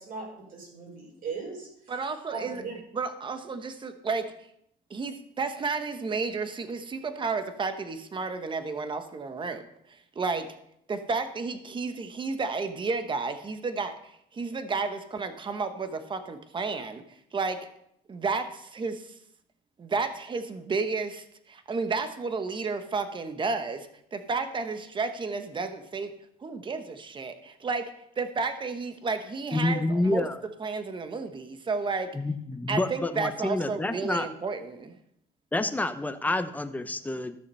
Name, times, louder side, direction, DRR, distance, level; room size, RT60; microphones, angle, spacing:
voice 1, 0.0-2.0 2.3-2.7, right 4 dB, 55° right, -1 dB, 5.9 m, -39 dB
voice 2, 1.9-2.6 2.9-4.3 4.9-9.6 9.9-10.5 10.9-13.9 14.3-17.0 17.3-17.6 18.1-19.1 19.8-26.1 26.4-27.9 28.2-30.3 30.6-32.1 32.7-35.0, right 4 dB, 30° right, 9 dB, 1.2 m, -32 dB
voice 3, 29.5-30.4 32.1-34.3 35.5-37.4, left 2 dB, 10° left, 9 dB, 0.9 m, -28 dB
14.5 x 6.6 x 5.5 m, 0.73 s
cardioid pair, 110°, 17 cm